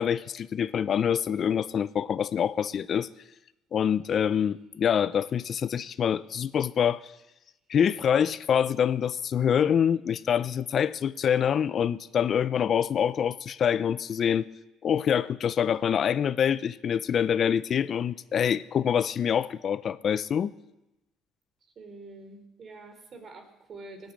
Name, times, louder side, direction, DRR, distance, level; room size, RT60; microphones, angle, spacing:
voice 1, 0.0-3.1 3.7-7.0 7.7-14.5 14.8-20.5, left 8 dB, 50° left, 16 dB, 0.6 m, -25 dB
voice 2, 21.8-24.1, right 3 dB, 45° right, 7 dB, 3.4 m, -46 dB
18.0 x 9.2 x 8.6 m, 0.98 s
supercardioid pair, 85°, 0 cm